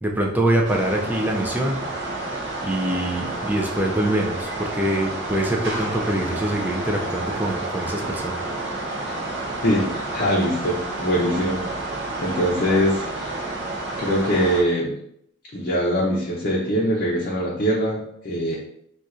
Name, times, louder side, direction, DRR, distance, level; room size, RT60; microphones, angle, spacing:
voice 1, 0.0-1.8 2.6-8.4, right 1 dB, 10° right, 0 dB, 0.4 m, -24 dB
sound 1, 0.6-14.6, right 2 dB, 55° right, 0.5 m, -30 dB
voice 2, 9.6-11.6 12.2-13.4 14.0-15.0 15.5-18.0 18.2-18.6, equal, 40° left, -6 dB, 0.6 m, -22 dB
4.1 x 2.4 x 2.4 m, 0.72 s
head